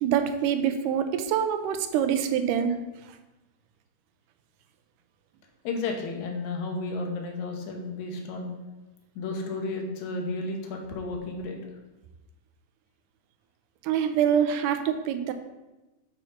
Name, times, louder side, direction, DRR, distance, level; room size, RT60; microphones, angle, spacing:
voice 1, 0.0-2.8 13.8-15.3, right 8 dB, 85° right, 8 dB, 2.2 m, -25 dB
voice 2, 5.6-8.5 9.2-11.6, left 3 dB, 70° left, 2 dB, 2.3 m, -32 dB
7.0 x 4.3 x 5.6 m, 1.1 s
omnidirectional pair, 3.7 m